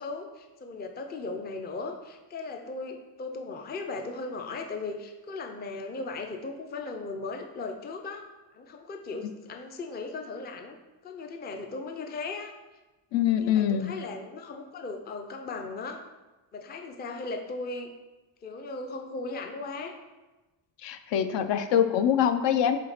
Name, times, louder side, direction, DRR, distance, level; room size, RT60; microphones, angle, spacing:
voice 1, 0.0-8.3 8.5-10.8 11.0-12.5 13.4-16.0 16.5-17.9 18.4-20.0, left 3 dB, 25° left, 4 dB, 0.4 m, -37 dB
voice 2, 13.1-13.9 20.8-22.8, left 9 dB, 70° left, 9 dB, 0.6 m, -24 dB
7.2 x 3.2 x 5.7 m, 1.1 s
cardioid pair, 175°, 45 cm